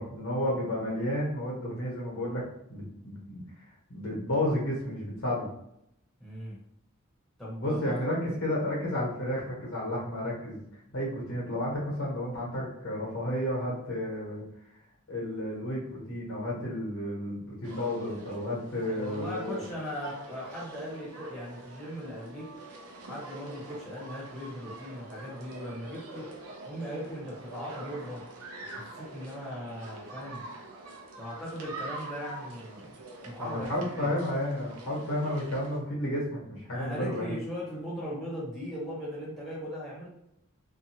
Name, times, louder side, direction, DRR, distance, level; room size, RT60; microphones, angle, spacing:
voice 1, 0.0-2.4 2.7-3.4 3.9-5.5 7.6-10.6 10.9-14.4 15.1-19.6 33.4-37.3, left 1 dB, 65° left, -3 dB, 1.1 m, -32 dB
voice 2, 6.2-6.6 7.4-8.0 18.8-22.5 23.0-26.3 26.6-28.3 28.6-30.4 31.2-32.9 33.2-34.2 36.7-40.1, equal, ahead, -7 dB, 0.9 m, -38 dB
sound 1, 17.6-35.8, right 2 dB, 90° right, 0.6 m, -45 dB
2.6 x 2.3 x 2.8 m, 0.77 s
head